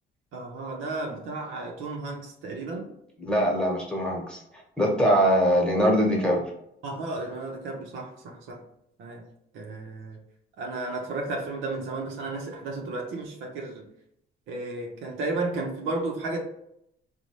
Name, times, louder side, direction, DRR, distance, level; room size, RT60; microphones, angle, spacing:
voice 1, 0.3-2.9 6.8-8.6 9.0-9.2 9.5-10.2 10.6-13.9 14.5-16.4, right 2 dB, 90° right, 1 dB, 0.8 m, -33 dB
voice 2, 3.2-4.4 4.8-6.4, equal, 5° left, -1 dB, 1.2 m, -22 dB
4.0 x 2.3 x 3.1 m, 0.76 s
cardioid pair, 90°, 20 cm